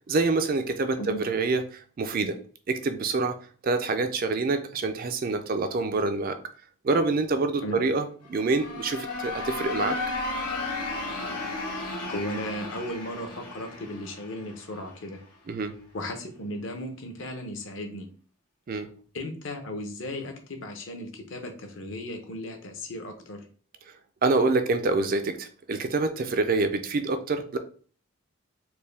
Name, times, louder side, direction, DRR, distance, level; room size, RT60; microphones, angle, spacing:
voice 1, 0.1-2.4 2.7-3.3 3.6-6.4 6.8-10.0 15.5-15.7 18.7-18.9 24.2-27.6, right 3 dB, 40° right, 8 dB, 0.3 m, -26 dB
sound 1, 8.2-15.0, left 2 dB, 85° left, 0.9 m, -34 dB
voice 2, 12.1-15.2 15.9-18.1 19.1-23.4, left 1 dB, 55° left, 5 dB, 0.8 m, -36 dB
4.3 x 2.2 x 3.3 m, 0.42 s
head